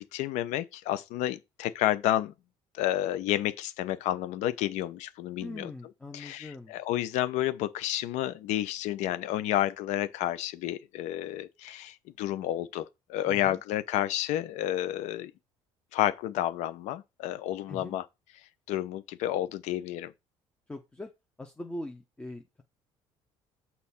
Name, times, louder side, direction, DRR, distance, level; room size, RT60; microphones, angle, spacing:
voice 1, 0.0-2.3 2.7-5.7 6.1-15.3 15.9-18.0 18.7-20.1, left 13 dB, 85° left, 0.8 m, -30 dB
voice 2, 5.4-6.7 13.2-13.6 17.7-18.0 20.7-21.1 21.4-22.6, left 2 dB, 10° left, 0.8 m, -41 dB
6.5 x 4.2 x 5.7 m
cardioid pair, 130°, 12 cm